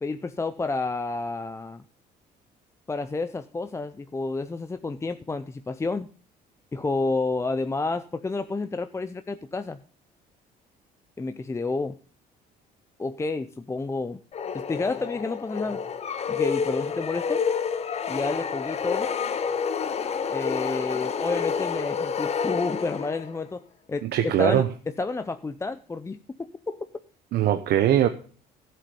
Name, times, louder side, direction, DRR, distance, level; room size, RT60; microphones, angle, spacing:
voice 1, 0.0-1.8 2.9-6.1 6.7-9.8 11.2-12.0 13.0-14.2 14.5-15.8 16.3-17.4 18.1-19.1 20.3-24.6 25.0-26.8, left 3 dB, 15° left, 10 dB, 0.6 m, -30 dB
sound 1, 14.3-23.4, left 6 dB, 40° left, 1.0 m, -29 dB
voice 2, 24.0-24.7 27.3-28.1, right 11 dB, 70° right, 9 dB, 0.9 m, -21 dB
13.0 x 7.8 x 5.3 m, 0.43 s
cardioid pair, 110°, 17 cm